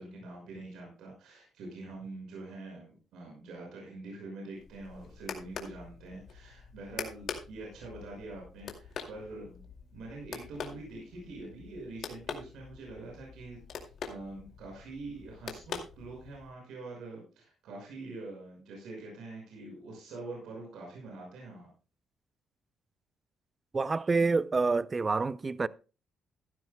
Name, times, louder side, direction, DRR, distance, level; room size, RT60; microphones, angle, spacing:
voice 1, 0.0-9.6 9.9-21.7, right 2 dB, 85° right, 5.7 m, -45 dB
sound 1, 4.6-16.5, left 6 dB, 65° left, 2.3 m, -44 dB
voice 2, 23.7-25.7, right 4 dB, 30° right, 0.4 m, -27 dB
15.5 x 12.0 x 2.2 m
cardioid pair, 90°, 0 cm